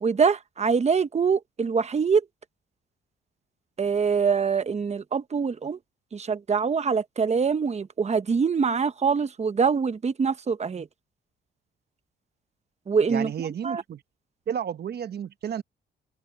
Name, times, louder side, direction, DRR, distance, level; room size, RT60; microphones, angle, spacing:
voice 1, 0.0-2.2 3.8-5.8 6.1-10.9 12.9-13.3 13.6-13.8, right 5 dB, 35° right, 1.2 m, -24 dB
voice 2, 13.1-14.0 14.5-15.6, right 8 dB, 55° right, 1.2 m, -32 dB
open air
cardioid pair, 90°, 20 cm